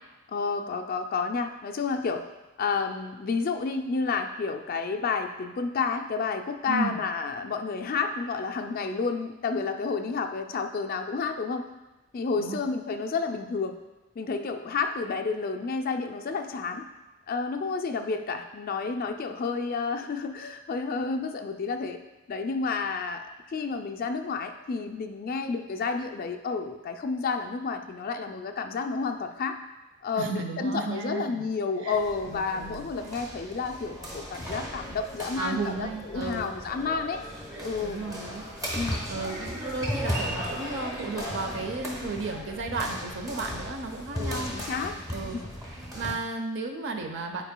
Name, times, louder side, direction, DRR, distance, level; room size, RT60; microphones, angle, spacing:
voice 1, 0.3-2.2 2.6-11.7 12.1-13.8 14.2-16.9 17.3-22.0 22.3-29.6 30.0-37.2 37.6-38.0 38.8-39.0 44.1-45.0 45.3-45.4, left 4 dB, 40° left, 5 dB, 0.3 m, -30 dB
voice 2, 6.7-7.0 12.4-12.6 30.2-31.4 31.8-32.0 32.3-32.9 35.4-36.6 37.5-38.5 39.1-44.5 45.1-45.4 45.9-47.4, right 3 dB, 55° right, 5 dB, 0.6 m, -34 dB
sound 1, 31.9-46.1, equal, 15° right, 0.9 m, -36 dB
9.9 x 4.6 x 2.2 m, 1.1 s
head